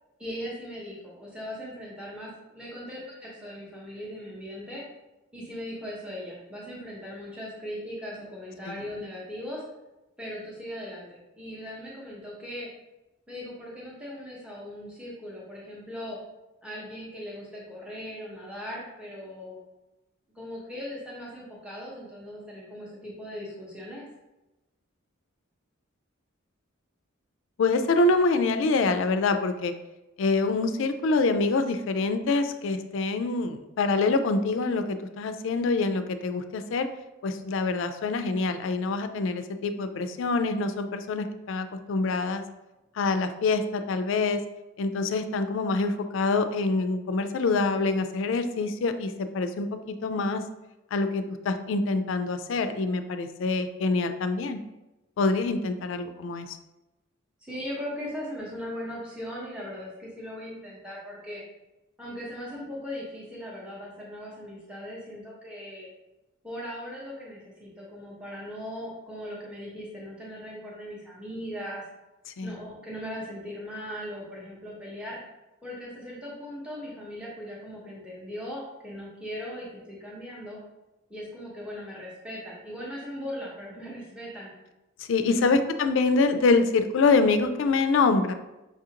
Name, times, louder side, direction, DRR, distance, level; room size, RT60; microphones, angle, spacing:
voice 1, 0.2-4.8 5.3-9.6 10.2-12.7 13.3-16.2 16.6-19.6 20.3-24.1 57.4-61.4 62.0-65.9 66.4-71.8 72.4-75.2 75.6-80.6 81.1-84.5 85.3-85.5, equal, 5° right, -6 dB, 0.7 m, -39 dB
voice 2, 27.6-29.7 30.2-36.9 37.2-42.4 43.0-44.4 44.8-50.4 50.9-54.6 55.2-56.6 72.4-72.6 85.0-88.3, left 3 dB, 60° left, 9 dB, 0.3 m, -25 dB
5.6 x 2.5 x 2.8 m, 0.99 s
head